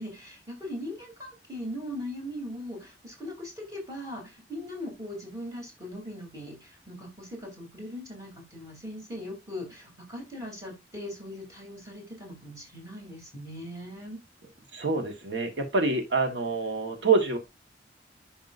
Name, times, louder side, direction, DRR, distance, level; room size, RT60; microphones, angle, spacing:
voice 1, 0.0-14.2, left 1 dB, 20° right, 0 dB, 3.3 m, -40 dB
voice 2, 14.7-17.4, right 4 dB, 80° right, 5 dB, 1.5 m, -26 dB
11.0 x 5.8 x 2.6 m, 0.22 s
head